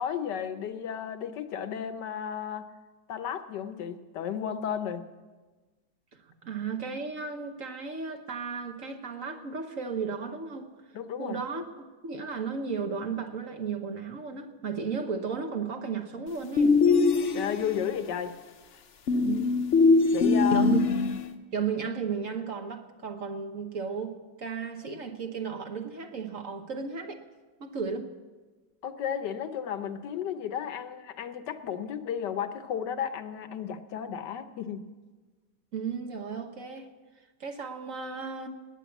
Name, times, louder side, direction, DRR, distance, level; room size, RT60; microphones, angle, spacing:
voice 1, 0.0-2.7 3.1-5.0 10.9-11.4 17.3-18.4 18.7-18.8 20.1-20.7 28.8-34.9, left 8 dB, 75° left, 1.5 m, -33 dB
voice 2, 6.3-10.7 11.2-11.7 12.0-16.8 19.2-19.5 20.5-20.9 21.5-27.2 27.6-28.1 35.7-36.9 37.4-38.5, right 5 dB, 50° right, 1.4 m, -34 dB
sound 1, 16.6-17.8 19.1-21.3, left 4 dB, 50° left, 1.0 m, -22 dB
20.0 x 9.0 x 7.2 m
omnidirectional pair, 1.9 m